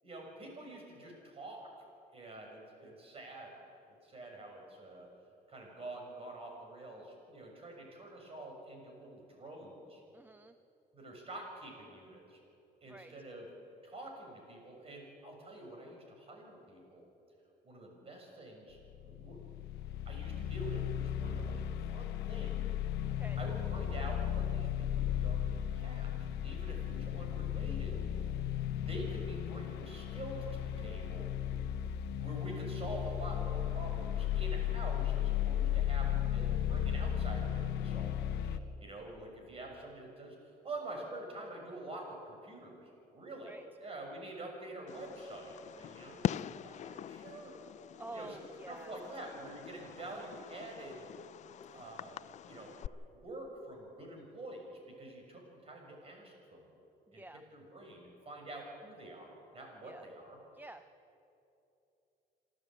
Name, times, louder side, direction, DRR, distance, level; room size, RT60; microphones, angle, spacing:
voice 1, 0.0-1.7 2.1-3.5 4.0-5.1 5.5-10.0 10.9-12.4 12.8-13.5 13.8-17.0 17.6-19.4 20.0-21.6 21.9-22.7 23.4-28.0 28.8-31.3 32.2-40.4 40.6-47.6 48.1-48.4 48.7-51.0 51.7-52.7 53.1-56.7 57.1-57.2 57.5-60.4, right 2 dB, 35° right, 2 dB, 6.8 m, -47 dB
voice 2, 10.1-10.5 12.9-13.1 23.1-23.4 43.4-43.6 48.0-48.9 57.1-57.4 59.8-60.1 60.5-60.8, right 2 dB, 10° right, 10 dB, 0.6 m, -49 dB
sound 1, 18.8-38.6, left 10 dB, 80° left, 1.0 m, -35 dB
Fireworks, 44.9-52.9, left 10 dB, 45° left, 0.4 m, -43 dB
27.5 x 13.0 x 9.0 m, 2.8 s
cardioid pair, 110°, 17 cm